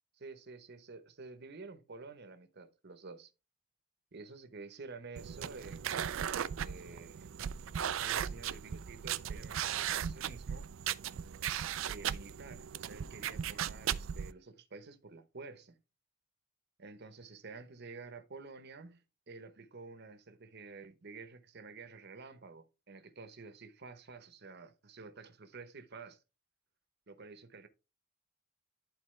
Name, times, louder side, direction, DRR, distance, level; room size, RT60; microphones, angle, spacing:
voice 1, 0.2-3.3 4.1-7.4 7.9-10.7 11.9-15.8 16.8-26.2 27.1-27.7, right 4 dB, 55° right, 0.9 m, -50 dB
sound 1, 5.2-14.3, right 9 dB, 75° right, 0.4 m, -37 dB
11.0 x 4.1 x 3.2 m
head